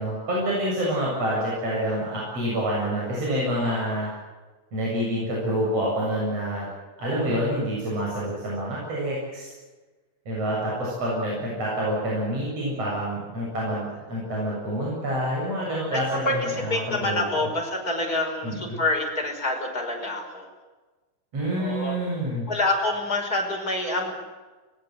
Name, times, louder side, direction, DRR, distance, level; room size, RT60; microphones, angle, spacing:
voice 1, 0.0-4.1 4.7-6.7 7.0-9.5 10.3-17.5 18.4-18.8 21.3-22.5, equal, 50° right, -5 dB, 9.0 m, -27 dB
voice 2, 15.6-20.5 21.6-22.0 22.5-24.1, left 2 dB, 25° left, 1 dB, 5.7 m, -27 dB
25.0 x 21.0 x 8.1 m, 1.3 s
omnidirectional pair, 3.7 m